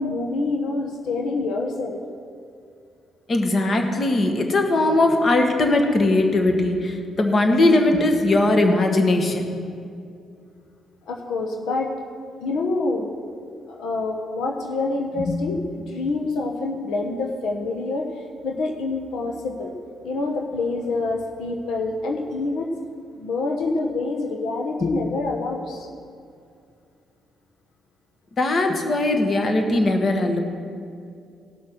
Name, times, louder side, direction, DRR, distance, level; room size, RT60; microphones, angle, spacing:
voice 1, 0.0-2.0 11.1-11.9 12.4-13.1 13.7-18.0 18.4-19.7 20.0-22.7 23.1-25.9, left 3 dB, 85° left, 2 dB, 1.1 m, -26 dB
voice 2, 3.3-9.6 15.2-15.4 24.8-25.0 28.4-30.4, left 2 dB, 45° left, 4 dB, 1.6 m, -20 dB
18.0 x 6.2 x 6.1 m, 2.4 s
cardioid pair, 90°, 0 cm